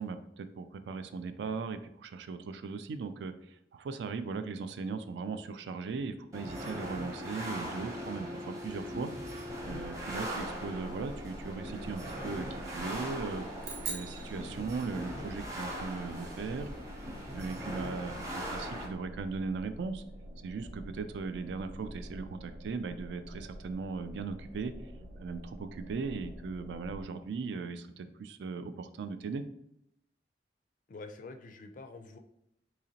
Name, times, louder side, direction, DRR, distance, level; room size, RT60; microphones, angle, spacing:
voice 1, 0.0-9.1 9.6-13.5 13.8-16.7 17.3-20.0 20.4-24.7 25.2-29.5, right 4 dB, 70° right, 10 dB, 0.3 m, -38 dB
sound 1, 6.3-18.9, equal, 20° right, 0.7 m, -40 dB
sound 2, 9.5-27.1, equal, 90° right, 0.7 m, -48 dB
sound 3, 13.6-15.3, right 6 dB, 55° right, 0.7 m, -42 dB
voice 2, 30.9-32.2, left 3 dB, 45° left, 6 dB, 0.4 m, -46 dB
3.8 x 2.9 x 2.8 m, 0.79 s
head